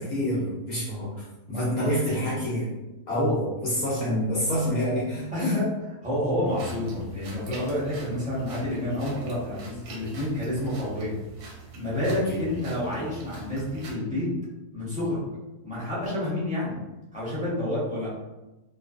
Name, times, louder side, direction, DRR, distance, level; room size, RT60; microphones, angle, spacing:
voice 1, 0.1-1.1 1.5-2.7 3.1-5.5 12.3-12.4, equal, 70° left, -6 dB, 1.0 m, -27 dB
voice 2, 1.5-1.9 3.1-3.3 5.3-11.1 11.7-14.3 14.7-15.2 15.6-16.8 17.1-18.1, left 1 dB, 5° right, -10 dB, 0.6 m, -29 dB
sound 1, 6.4-13.9, right 3 dB, 70° right, 1.0 m, -44 dB
2.5 x 2.3 x 2.3 m, 1.0 s
omnidirectional pair, 1.8 m